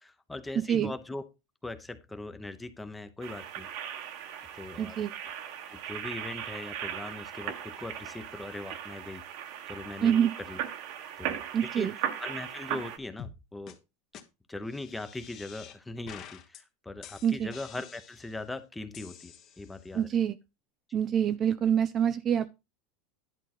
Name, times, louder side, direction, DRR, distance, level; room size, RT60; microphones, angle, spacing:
voice 1, 0.0-1.2 1.6-3.7 4.6-5.0 5.7-9.2 9.7-10.6 11.2-11.4 11.7-11.9 12.2-13.8 14.5-20.1, left 2 dB, 5° left, 0.9 m, -40 dB
voice 2, 0.6-0.9 4.8-5.1 10.0-10.3 11.5-11.9 17.2-17.5 19.9-20.4 20.9-22.5, right 9 dB, 30° right, 0.5 m, -26 dB
sound 1, 3.2-13.0, right 10 dB, 60° right, 1.3 m, -38 dB
sound 2, 13.2-13.4 13.7-13.8 14.1-14.2 14.7-15.8 16.1-16.6 17.0-18.4 18.9-19.9, left 9 dB, 40° left, 1.3 m, -48 dB
11.0 x 3.7 x 6.0 m
supercardioid pair, 145°, 0 cm